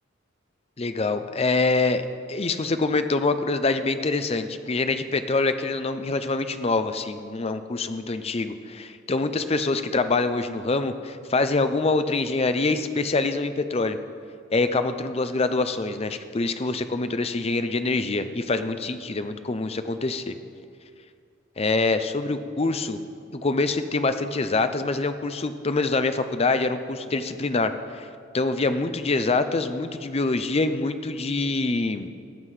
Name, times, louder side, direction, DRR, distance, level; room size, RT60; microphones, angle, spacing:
voice 1, 0.8-2.0 2.3-14.0 14.5-20.3 21.6-23.0 23.3-28.1 28.3-32.1, left 3 dB, 30° left, 10 dB, 0.5 m, -25 dB
18.0 x 7.4 x 4.9 m, 2.3 s
head